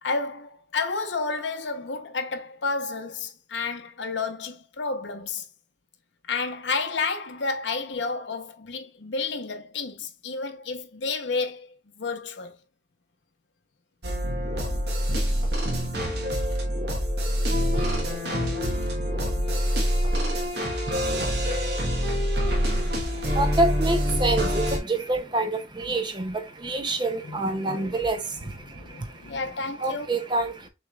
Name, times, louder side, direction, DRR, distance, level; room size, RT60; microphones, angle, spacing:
voice 1, 0.0-5.5 6.3-12.6 18.8-19.5 27.2-28.0 28.4-30.1, left 4 dB, 75° left, 0.7 m, -31 dB
sound 1, 14.0-24.8, equal, 65° right, 1.2 m, -25 dB
voice 2, 23.0-29.4 29.8-30.7, right 2 dB, 25° right, 0.5 m, -27 dB
6.3 x 3.1 x 2.3 m
head